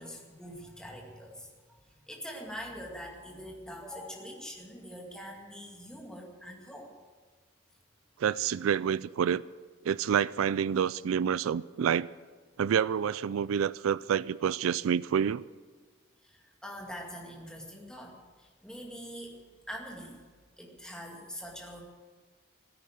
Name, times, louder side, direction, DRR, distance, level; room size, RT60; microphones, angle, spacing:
voice 1, 0.0-6.9 16.2-19.4 19.7-20.2 20.6-21.8, equal, 5° left, 2.2 m, -44 dB
voice 2, 8.2-9.4 9.8-12.1 12.6-15.4, right 8 dB, 85° right, 0.4 m, -28 dB
15.5 x 9.7 x 9.0 m
head